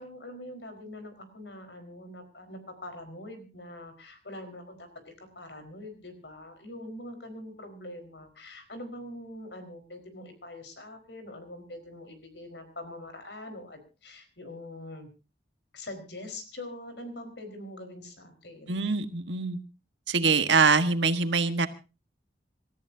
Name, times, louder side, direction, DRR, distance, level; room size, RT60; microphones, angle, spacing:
voice 1, 0.0-15.1 15.7-18.8, left 1 dB, 75° left, 8 dB, 4.6 m, -43 dB
voice 2, 18.7-19.6 20.1-21.7, right 4 dB, 90° right, 10 dB, 1.5 m, -24 dB
27.5 x 14.0 x 2.7 m, 0.31 s
head